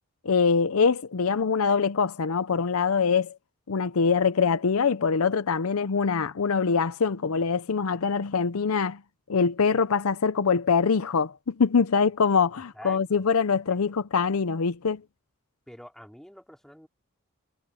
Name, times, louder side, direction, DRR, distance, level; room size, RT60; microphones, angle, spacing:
voice 1, 0.2-3.4 3.7-9.0 9.3-15.0, left 5 dB, 70° left, 0.6 m, -24 dB
voice 2, 12.7-13.3 13.8-13.9 15.7-16.9, equal, ahead, 4.2 m, -46 dB
head